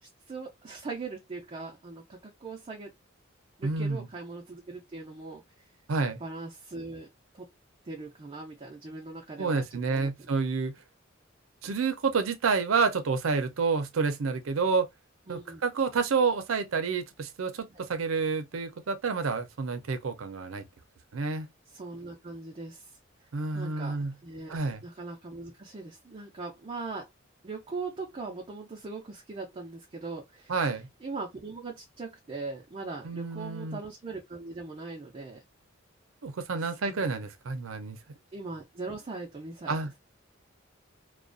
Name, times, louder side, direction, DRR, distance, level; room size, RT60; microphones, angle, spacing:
voice 1, 0.0-2.9 3.6-5.4 6.2-7.1 7.3-7.5 7.8-10.3 15.3-15.6 17.7-17.9 21.7-23.0 23.5-27.1 27.4-30.5 31.0-35.4 36.6-37.1 38.3-39.8, right 3 dB, 30° right, 0.4 m, -40 dB
voice 2, 3.6-4.1 5.9-6.2 9.4-10.7 11.6-14.9 15.3-20.6 21.1-21.5 23.3-24.1 24.5-24.8 30.5-30.9 33.0-33.8 36.2-38.0 39.7-39.9, right 4 dB, 90° right, 0.5 m, -29 dB
2.3 x 2.1 x 2.4 m
head